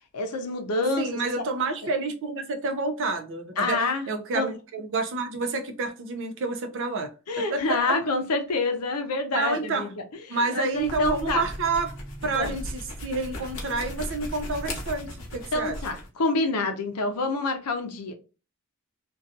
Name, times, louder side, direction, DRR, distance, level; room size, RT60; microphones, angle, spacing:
voice 1, 0.1-1.4 3.6-4.1 4.3-4.5 7.3-9.9 10.3-11.4 12.3-12.5 15.5-18.1, left 3 dB, 85° left, 0.6 m, -27 dB
voice 2, 1.0-7.1 7.5-7.9 9.3-9.9 10.3-11.9 12.2-15.8, right 3 dB, 60° right, 0.5 m, -29 dB
sound 1, 10.7-16.1, left 1 dB, 60° left, 0.9 m, -37 dB
2.6 x 2.3 x 2.4 m
head